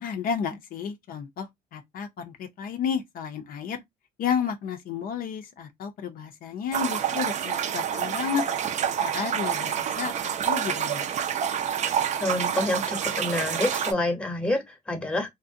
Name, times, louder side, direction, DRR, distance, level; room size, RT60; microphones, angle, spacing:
voice 1, 0.0-3.8 4.2-8.4 8.9-11.1, left 7 dB, 60° left, 0.5 m, -32 dB
sound 1, 6.7-13.9, right 9 dB, 45° right, 0.4 m, -28 dB
voice 2, 12.2-15.3, left 1 dB, 5° left, 0.7 m, -27 dB
2.6 x 2.0 x 2.5 m
cardioid pair, 110°, 17 cm